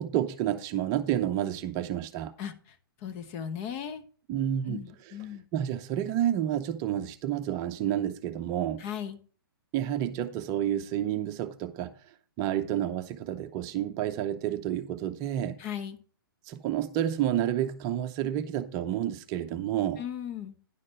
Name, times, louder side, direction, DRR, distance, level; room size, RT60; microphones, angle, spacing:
voice 1, 0.0-2.3 4.3-4.9 5.5-8.8 9.7-15.6 16.5-20.0, right 11 dB, 25° right, 0.7 m, -30 dB
voice 2, 2.4-4.0 4.7-5.4 8.8-9.2 15.6-16.0 20.0-20.6, left 9 dB, 35° left, 1.1 m, -37 dB
10.0 x 6.5 x 4.4 m
figure-of-eight pair, 130°, 12 cm